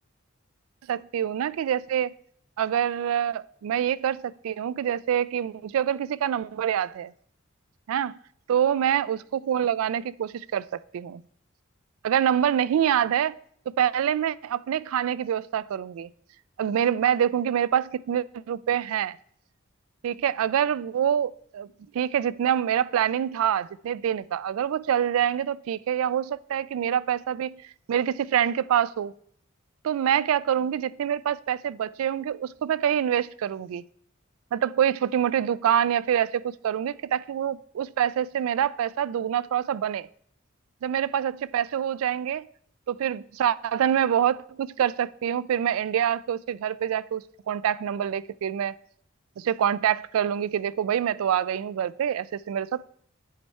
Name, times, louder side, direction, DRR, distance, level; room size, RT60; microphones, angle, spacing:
voice 1, 0.9-2.1 2.6-7.1 7.9-8.1 8.5-11.2 12.0-13.3 13.7-16.1 16.6-19.2 20.0-21.7 21.9-27.6 27.9-29.1 29.8-33.8 34.5-40.1 40.8-42.4 42.9-48.8 49.4-52.8, right 9 dB, 85° right, 0.3 m, -26 dB
10.0 x 4.5 x 4.2 m
head